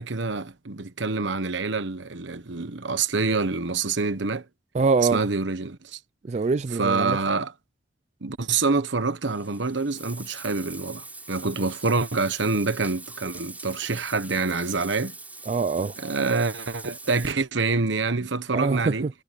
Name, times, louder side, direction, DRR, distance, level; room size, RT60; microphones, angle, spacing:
voice 1, 0.0-4.4 5.1-6.0 6.7-7.5 8.2-15.1 16.0-19.1, right 3 dB, 70° right, 1.2 m, -26 dB
voice 2, 4.7-5.2 6.3-7.2 15.5-15.9 18.5-18.9, right 4 dB, 35° right, 0.3 m, -23 dB
Bathtub (filling or washing), 9.3-17.3, right 3 dB, 10° right, 6.0 m, -42 dB
head